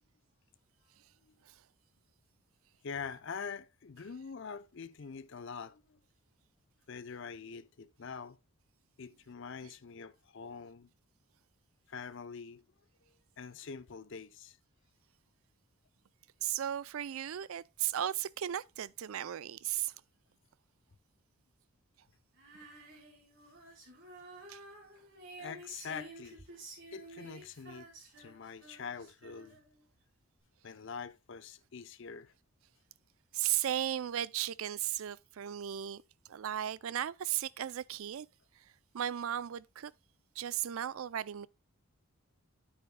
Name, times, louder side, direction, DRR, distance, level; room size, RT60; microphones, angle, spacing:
voice 1, 2.8-6.0 6.9-8.4 9.0-10.9 11.9-12.6 13.4-14.6 25.4-26.5 26.9-27.9 28.2-29.6 30.6-32.3, left 6 dB, 55° left, 0.5 m, -44 dB
voice 2, 16.4-19.9 24.5-24.6 33.3-36.0 36.3-38.3 38.9-39.9 40.4-41.5, right 11 dB, 70° right, 0.4 m, -35 dB
Female singing, 22.3-29.8, right 2 dB, 55° right, 3.7 m, -52 dB
9.4 x 8.6 x 2.2 m
head